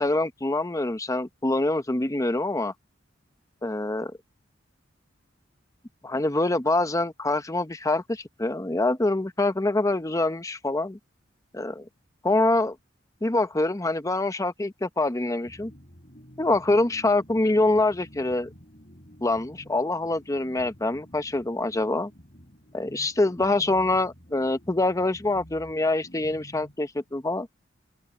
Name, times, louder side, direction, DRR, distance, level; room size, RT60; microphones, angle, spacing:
voice 1, 0.0-2.7 3.6-4.1 6.0-11.0 11.5-11.9 12.2-12.8 13.2-15.7 16.4-18.5 19.2-22.1 22.7-27.5, left 2 dB, 15° left, 0.8 m, -25 dB
sound 1, 15.4-27.3, equal, 45° left, 5.4 m, -50 dB
open air
head